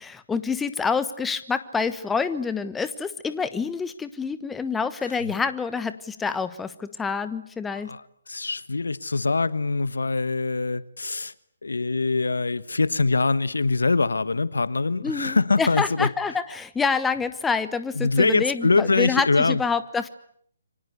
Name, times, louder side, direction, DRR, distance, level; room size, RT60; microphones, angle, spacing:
voice 1, 0.0-7.9 15.0-20.1, left 5 dB, 10° left, 1.2 m, -27 dB
voice 2, 7.7-11.3 11.6-16.1 17.9-19.6, left 3 dB, 85° left, 1.4 m, -23 dB
27.5 x 25.0 x 8.2 m
hypercardioid pair, 150°, 0 cm